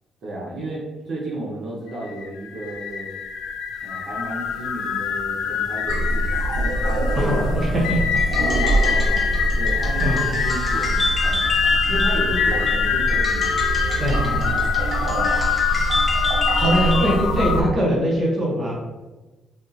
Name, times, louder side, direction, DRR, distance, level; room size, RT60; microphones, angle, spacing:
voice 1, 0.2-3.1 3.8-7.5 8.4-9.3 9.5-11.5 11.9-13.5 15.0-15.3, right 1 dB, 55° right, -4 dB, 0.9 m, -32 dB
sound 1, 1.9-17.6, left 7 dB, 80° left, 0.4 m, -25 dB
sound 2, 5.9-17.7, right 1 dB, 85° right, 0.5 m, -25 dB
voice 2, 7.2-8.0 10.0-10.4 14.0-14.6 16.6-18.7, equal, 30° right, -3 dB, 1.0 m, -22 dB
sound 3, 8.2-17.2, left 2 dB, 25° left, 0.8 m, -28 dB
3.5 x 2.4 x 2.7 m, 1.1 s
cardioid pair, 90°, 0 cm